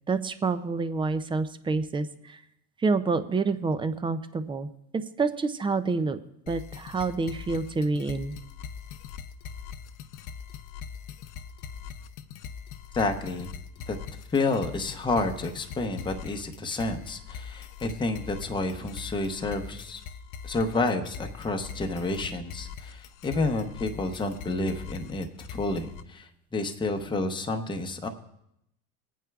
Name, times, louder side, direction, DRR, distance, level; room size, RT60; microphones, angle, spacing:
voice 1, 0.1-2.4 2.8-6.2 6.5-8.3, right 4 dB, 15° right, 12 dB, 0.3 m, -28 dB
sound 1, 6.5-26.0, left 7 dB, 50° left, 0.6 m, -42 dB
voice 2, 12.9-13.5 13.9-14.0 14.3-20.0 20.4-28.1, left 2 dB, 10° left, 4 dB, 0.8 m, -30 dB
22.0 x 9.1 x 2.3 m, 0.80 s
supercardioid pair, 110°, 41 cm